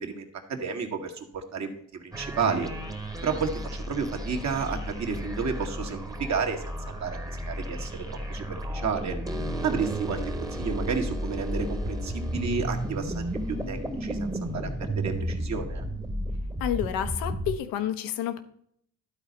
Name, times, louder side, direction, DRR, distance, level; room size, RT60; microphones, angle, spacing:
voice 1, 0.0-2.7 3.2-7.2 7.5-9.2 9.6-10.2 10.6-14.7 15.0-15.8, right 5 dB, 50° right, 3 dB, 1.9 m, -31 dB
sound 1, 2.1-17.6, right 1 dB, 10° right, 1.2 m, -33 dB
voice 2, 16.6-18.4, left 11 dB, 85° left, 10 dB, 1.0 m, -29 dB
12.0 x 4.2 x 5.1 m, 0.66 s
cardioid pair, 85°, 34 cm